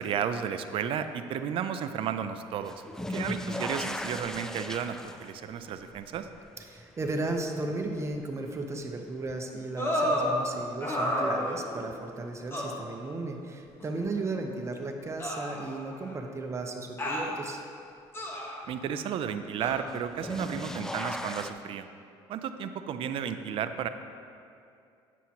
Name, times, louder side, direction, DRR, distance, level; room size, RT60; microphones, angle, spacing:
voice 1, 0.0-2.8 3.1-6.3 18.7-21.9 22.3-23.9, right 8 dB, 55° right, 10 dB, 0.4 m, -33 dB
sound 1, 2.6-9.7 10.1-10.8 12.4-12.5 14.1-14.2 19.9-21.5, left 1 dB, 5° left, 0.4 m, -38 dB
voice 2, 6.7-17.6, right 2 dB, 25° right, 3 dB, 0.8 m, -35 dB
sound 2, 9.8-10.3 10.8-11.8 12.5-12.7 13.8-13.9 15.2-16.1 17.0-17.3 18.1-18.6 19.6-19.8, equal, 20° left, 1.2 m, -30 dB
9.1 x 7.2 x 2.9 m, 2.5 s
cardioid pair, 100°, 11 cm